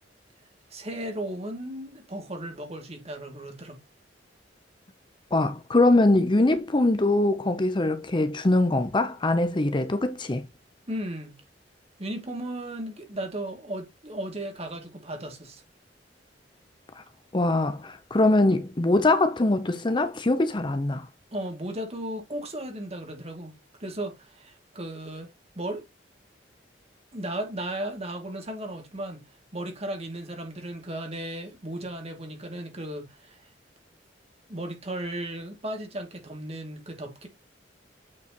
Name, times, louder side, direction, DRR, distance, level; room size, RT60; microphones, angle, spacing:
voice 1, 0.7-3.8 10.9-11.4 12.0-15.6 21.3-23.5 23.8-25.9 27.1-29.2 29.5-33.4 34.5-37.3, right 1 dB, 35° right, 2.4 m, -35 dB
voice 2, 5.3-10.4 17.0-17.1 17.3-21.1, left 2 dB, 25° left, 0.7 m, -22 dB
8.4 x 4.8 x 3.0 m
head